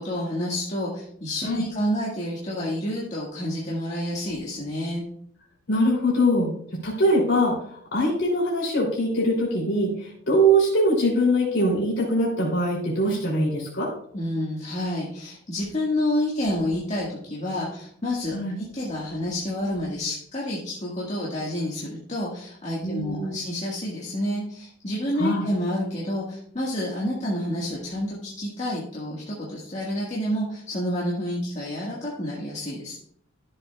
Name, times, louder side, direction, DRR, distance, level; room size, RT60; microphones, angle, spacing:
voice 1, 0.0-5.0 14.1-33.0, left 1 dB, 40° left, -5 dB, 1.8 m, -29 dB
voice 2, 5.7-6.5 6.8-13.9 18.3-18.6 22.8-23.4 25.2-25.5, equal, 70° left, -5 dB, 3.1 m, -22 dB
13.5 x 7.5 x 2.4 m, 0.65 s
head